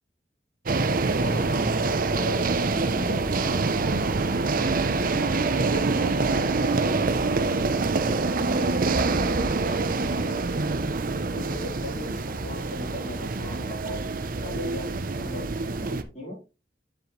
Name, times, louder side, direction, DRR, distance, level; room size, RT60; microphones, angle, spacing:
sound 1, 0.7-16.0, right 3 dB, 50° right, 0.8 m, -25 dB
voice 1, 1.1-7.6 8.1-9.2 9.6-10.4 11.2-14.0 14.4-15.5 15.8-16.4, equal, 40° left, -4 dB, 4.2 m, -38 dB
7.7 x 7.6 x 3.2 m, 0.31 s
head